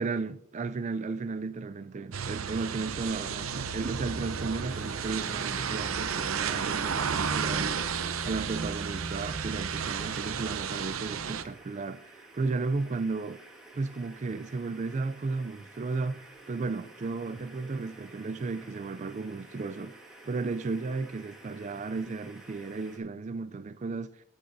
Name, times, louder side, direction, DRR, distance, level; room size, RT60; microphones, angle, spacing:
voice 1, 0.0-7.8 8.2-12.1 12.3-13.4 13.7-19.9 20.3-24.1, right 3 dB, 35° right, 0.4 m, -34 dB
sound 1, 2.1-11.4, right 6 dB, 90° right, 0.7 m, -32 dB
sound 2, 4.7-23.0, right 2 dB, ahead, 1.8 m, -52 dB
15.0 x 10.0 x 2.7 m
head